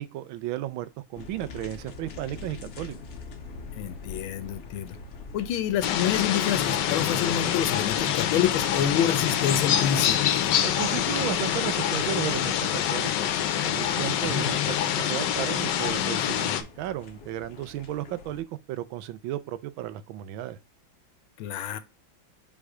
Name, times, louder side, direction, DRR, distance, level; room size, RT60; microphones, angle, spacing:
voice 1, 0.0-2.9 10.6-16.5 16.8-20.6, right 13 dB, 80° right, 1.4 m, -34 dB
sound 1, 1.1-18.4, left 4 dB, 50° left, 0.9 m, -45 dB
voice 2, 3.8-4.9 5.3-10.4 14.3-14.5 21.4-21.8, left 9 dB, 85° left, 1.6 m, -28 dB
sound 2, 5.8-16.6, left 10 dB, 70° left, 1.3 m, -26 dB
5.5 x 3.6 x 4.8 m
omnidirectional pair, 2.2 m